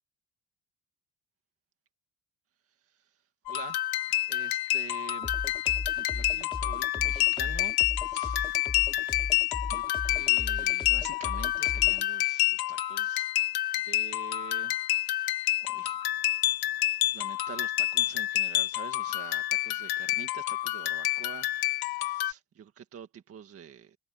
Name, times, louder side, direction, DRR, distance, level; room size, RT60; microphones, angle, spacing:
voice 1, 2.8-3.2 3.5-5.4 5.7-8.7 9.7-13.3 13.8-15.3 15.7-16.0 17.1-24.0, right 8 dB, 35° right, 1.8 m, -47 dB
sound 1, 3.5-22.3, left 16 dB, 60° left, 1.6 m, -28 dB
sound 2, 5.2-12.0, left 3 dB, 10° left, 2.9 m, -37 dB
cardioid pair, 175°, 41 cm